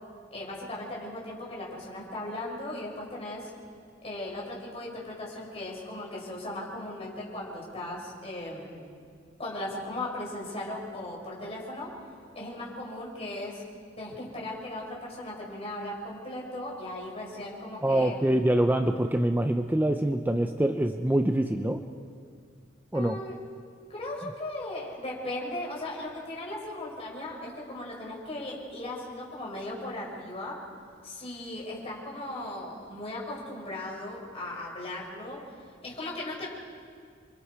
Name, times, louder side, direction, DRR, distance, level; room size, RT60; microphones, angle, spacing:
voice 1, 0.3-3.5 4.0-8.8 9.4-11.9 12.3-13.6 14.0-18.1 22.9-23.3 23.9-30.6 31.0-35.4 35.8-36.5, left 1 dB, 30° left, -4 dB, 5.9 m, -37 dB
voice 2, 17.8-21.8 22.9-23.2, right 1 dB, 10° right, 6 dB, 0.6 m, -25 dB
29.0 x 24.0 x 4.8 m, 2.1 s
head